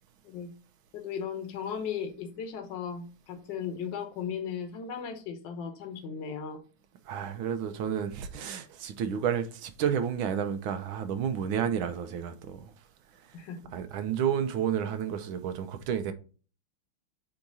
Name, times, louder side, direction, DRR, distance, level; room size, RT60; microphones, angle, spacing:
voice 1, 0.9-6.6 13.3-13.6, left 7 dB, 65° left, 1.7 m, -36 dB
voice 2, 7.1-12.7 13.7-16.1, right 8 dB, 75° right, 1.5 m, -31 dB
8.4 x 3.0 x 3.9 m
omnidirectional pair, 2.3 m